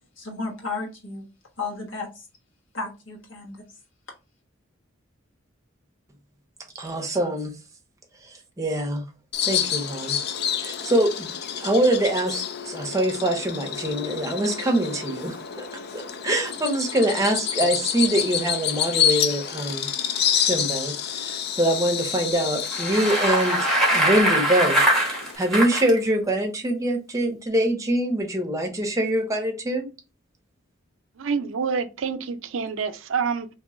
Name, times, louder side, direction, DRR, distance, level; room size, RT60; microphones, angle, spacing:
voice 1, 0.2-1.2 1.6-2.2 2.7-3.6, left 3 dB, 75° left, 1.4 m, -33 dB
voice 2, 6.7-7.5 8.6-9.0 9.4-10.2 10.6-11.3 11.6-15.6 15.9-19.9 20.3-29.9, right 1 dB, 15° right, 0.8 m, -24 dB
Bird vocalization bird call bird song, 9.3-25.4, left 8 dB, 55° left, 0.4 m, -28 dB
Bicycle, 22.6-25.9, right 1 dB, ahead, 1.1 m, -22 dB
voice 3, 31.2-33.5, right 5 dB, 90° right, 0.5 m, -27 dB
3.0 x 2.8 x 3.7 m
head